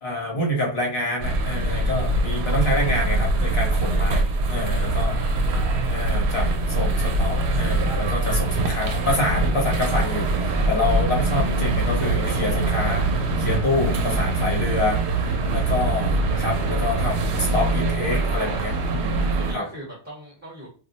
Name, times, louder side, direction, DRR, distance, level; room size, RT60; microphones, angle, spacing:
voice 1, 0.0-5.2 5.8-13.1 13.4-19.7, left 2 dB, 70° left, -1 dB, 1.2 m, -27 dB
sound 1, 1.2-19.5, right 2 dB, 90° right, 0.9 m, -23 dB
voice 2, 4.7-5.4 19.0-20.7, right 1 dB, 15° right, -5 dB, 0.9 m, -40 dB
2.6 x 2.0 x 3.9 m, 0.39 s
omnidirectional pair, 1.1 m